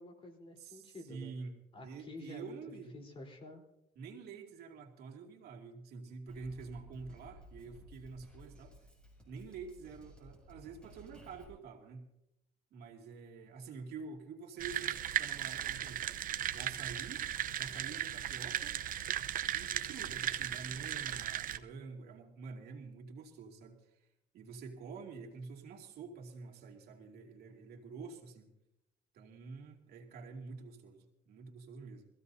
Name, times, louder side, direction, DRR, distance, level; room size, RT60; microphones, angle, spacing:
voice 1, 0.0-1.3 1.7-2.6 2.9-3.6, left 2 dB, 35° left, 1 dB, 3.9 m, -49 dB
voice 2, 0.6-1.5 1.8-2.9 4.0-8.8 9.3-12.0 12.7-16.0 16.5-17.2 17.6-18.8 19.5-24.1 24.3-28.5 29.1-32.1, right 4 dB, 70° right, 1 dB, 2.5 m, -48 dB
Drum kit, 6.3-11.5, equal, 5° left, 6.8 m, -56 dB
sound 1, 14.6-21.6, right 11 dB, 55° right, 0.8 m, -37 dB
23.5 x 15.5 x 2.8 m, 0.83 s
cardioid pair, 110°, 17 cm